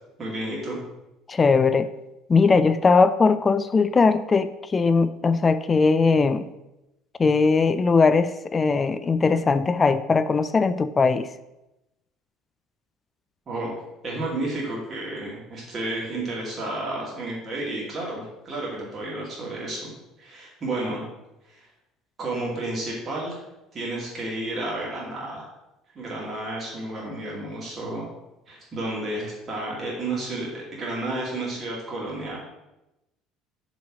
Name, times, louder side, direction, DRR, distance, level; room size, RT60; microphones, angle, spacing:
voice 1, 0.2-0.8 13.5-13.7 14.0-21.0 21.4-21.7 22.2-23.4 23.7-25.4 25.9-28.0 28.5-32.4, right 2 dB, 35° right, -4 dB, 2.3 m, -31 dB
voice 2, 1.3-1.9 2.3-6.5 7.2-11.3, left 4 dB, 25° left, 12 dB, 0.3 m, -20 dB
6.6 x 4.1 x 6.1 m, 0.95 s
figure-of-eight pair, 60°, 0 cm